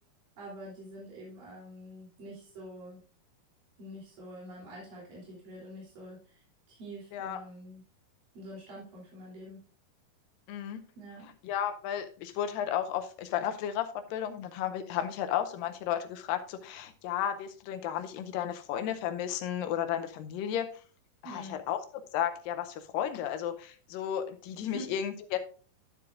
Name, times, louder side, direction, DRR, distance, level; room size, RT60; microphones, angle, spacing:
voice 1, 0.4-3.0 3.8-7.8 8.3-9.6 10.9-11.3 21.2-21.6 24.6-24.9, right 1 dB, 90° right, -5 dB, 4.9 m, -46 dB
voice 2, 10.5-10.8 11.4-20.7 21.2-21.8 22.1-25.4, left 10 dB, 90° left, 9 dB, 2.4 m, -33 dB
12.0 x 7.8 x 2.4 m, 0.40 s
omnidirectional pair, 3.9 m